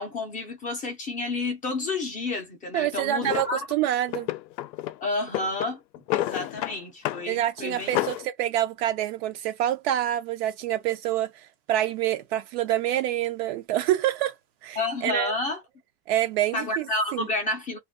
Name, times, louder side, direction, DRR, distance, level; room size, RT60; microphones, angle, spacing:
voice 1, 0.0-3.7 5.0-5.8 6.1-7.9 14.8-15.6 16.5-17.8, left 2 dB, 15° left, 0.4 m, -30 dB
voice 2, 2.7-4.3 7.3-14.3 14.6-15.3 16.1-16.9 17.1-17.3, right 12 dB, 45° right, 0.4 m, -27 dB
Drawer open or close, 3.2-3.5 4.1-5.0 5.3-6.8 7.0-7.3 7.6-8.3, left 15 dB, 85° left, 0.6 m, -30 dB
2.4 x 2.3 x 3.5 m
supercardioid pair, 145°, 49 cm